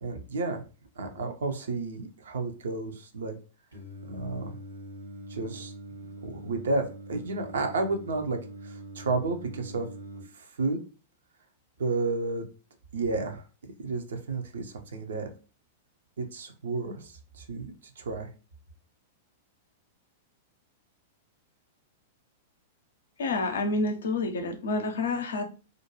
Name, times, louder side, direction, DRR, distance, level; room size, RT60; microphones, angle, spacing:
voice 1, 0.0-0.6 1.0-3.4 4.1-4.6 5.3-5.7 6.0-9.9 10.3-10.8 11.8-12.5 12.9-13.4 13.8-15.3 16.2-18.3, right 3 dB, 65° right, 5 dB, 0.5 m, -32 dB
Singing, 3.7-10.2, equal, 80° right, 0.9 m, -43 dB
voice 2, 23.2-25.4, left 2 dB, 65° left, 6 dB, 0.5 m, -28 dB
2.5 x 2.2 x 2.9 m, 0.35 s
figure-of-eight pair, 100°, 0 cm